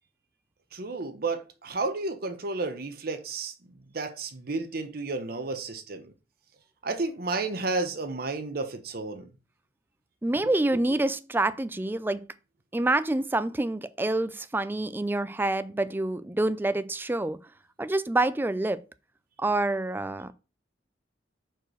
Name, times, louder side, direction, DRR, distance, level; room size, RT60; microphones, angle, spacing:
voice 1, 0.7-3.5 3.9-6.0 6.8-9.2, right 3 dB, 50° right, 0.9 m, -32 dB
voice 2, 10.2-12.2 12.7-17.4 17.8-18.8 19.4-20.3, right 2 dB, 10° right, 0.4 m, -27 dB
5.0 x 4.5 x 6.1 m
head